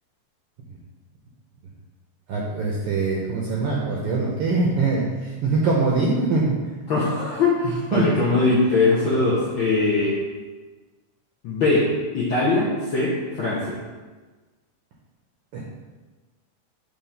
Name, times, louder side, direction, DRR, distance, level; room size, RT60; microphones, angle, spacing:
voice 1, 2.3-6.5 7.9-8.2 15.5-15.6, right 3 dB, 75° right, -3 dB, 1.3 m, -23 dB
voice 2, 6.9-10.2 11.4-11.9 12.1-13.8, left 3 dB, 70° left, -6 dB, 1.2 m, -21 dB
4.6 x 3.7 x 5.6 m, 1.3 s
omnidirectional pair, 3.3 m